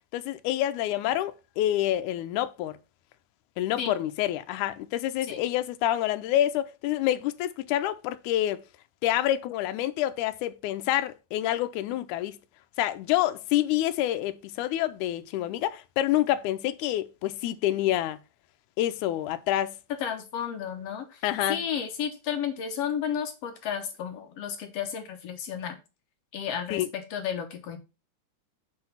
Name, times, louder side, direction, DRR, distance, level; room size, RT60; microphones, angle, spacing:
voice 1, 0.1-2.8 3.6-8.6 9.0-12.4 12.8-18.2 18.8-19.7 21.2-21.6 26.7-26.9, left 13 dB, 80° left, 2.0 m, -27 dB
voice 2, 20.0-21.2 21.5-25.8 26.3-27.8, left 8 dB, 65° left, 1.9 m, -32 dB
7.8 x 3.2 x 5.6 m
omnidirectional pair, 3.6 m